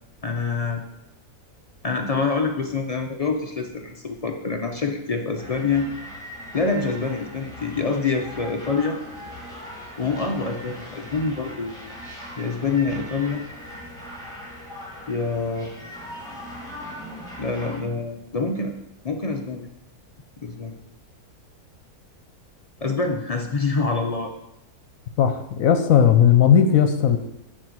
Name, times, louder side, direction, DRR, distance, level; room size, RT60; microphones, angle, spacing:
voice 1, 0.2-0.8 1.8-5.9 6.5-9.0 10.0-11.8 12.4-13.4 15.1-15.7 17.4-18.7 19.0-19.7 20.4-20.8 22.8-24.3, left 4 dB, 55° left, 3 dB, 0.4 m, -26 dB
sound 1, 5.4-17.8, equal, 5° left, 1.7 m, -40 dB
voice 2, 25.2-27.2, left 8 dB, 70° left, 8 dB, 1.1 m, -16 dB
9.5 x 4.3 x 6.2 m, 0.87 s
omnidirectional pair, 1.6 m